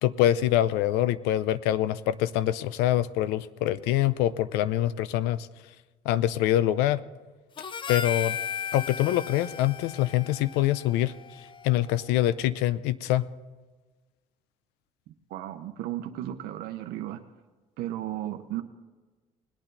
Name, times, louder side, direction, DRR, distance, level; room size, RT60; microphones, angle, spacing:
voice 1, 0.0-5.5 6.0-7.0 7.9-8.4 8.7-11.1 11.6-13.3, left 13 dB, 85° left, 16 dB, 0.6 m, -25 dB
Harmonica, 7.6-12.0, left 7 dB, 30° left, 0.5 m, -36 dB
voice 2, 15.3-17.2 17.8-18.6, right 13 dB, 75° right, 6 dB, 0.9 m, -34 dB
20.0 x 9.0 x 4.0 m, 1.3 s
supercardioid pair, 95°, 16 cm